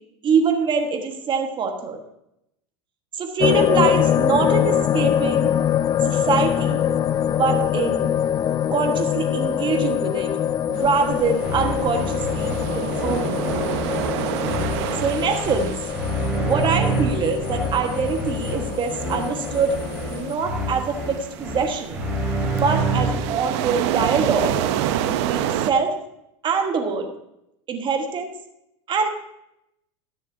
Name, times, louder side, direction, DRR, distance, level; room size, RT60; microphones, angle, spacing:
voice 1, 0.2-2.0 3.2-5.5 6.0-6.8 7.3-8.1 8.7-10.3 10.7-13.6 15.0-15.8 16.4-19.7 20.1-22.0 22.4-24.6 25.0-26.0 26.4-27.1 27.7-28.3 28.9-29.1, right 5 dB, 30° right, 5 dB, 1.4 m, -24 dB
sound 1, 3.4-20.3, left 9 dB, 25° left, 0.3 m, -24 dB
sound 2, 10.7-25.7, right 11 dB, 65° right, 0.7 m, -30 dB
sound 3, 11.4-23.4, right 2 dB, 10° right, 3.3 m, -28 dB
13.0 x 10.0 x 2.7 m, 0.81 s
hypercardioid pair, 105°, 15 cm